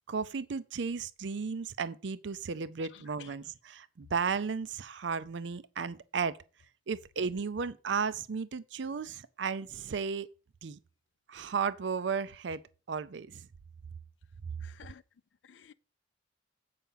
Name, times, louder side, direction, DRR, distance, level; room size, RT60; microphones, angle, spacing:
voice 1, 0.1-3.4 3.7-6.4 6.9-10.3 10.6-10.8 11.3-12.6 12.9-13.5, right 5 dB, 75° right, 0.5 m, -34 dB
voice 2, 2.8-3.5 14.6-15.0 15.4-15.7, left 8 dB, 80° left, 0.4 m, -53 dB
8.5 x 5.7 x 5.6 m
head